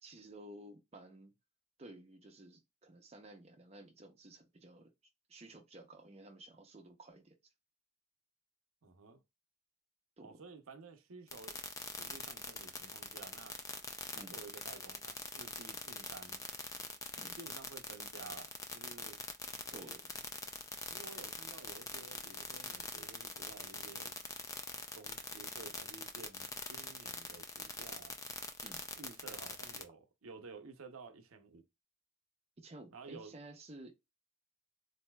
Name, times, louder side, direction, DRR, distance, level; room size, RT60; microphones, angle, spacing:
voice 1, 0.0-1.3 1.8-4.9 5.3-7.5 10.2-10.4 14.1-14.4 17.2-17.4 19.7-20.0 28.6-28.9 32.6-33.9, right 1 dB, 30° right, 0.6 m, -54 dB
voice 2, 8.8-9.2 10.2-11.6 11.9-13.6 14.1-16.4 17.4-19.2 19.7-20.0 20.9-24.2 24.9-28.1 29.0-31.6 32.9-33.3, right 4 dB, 75° right, 0.7 m, -53 dB
sound 1, 11.3-29.8, left 4 dB, 15° left, 0.3 m, -43 dB
4.0 x 2.6 x 2.2 m
head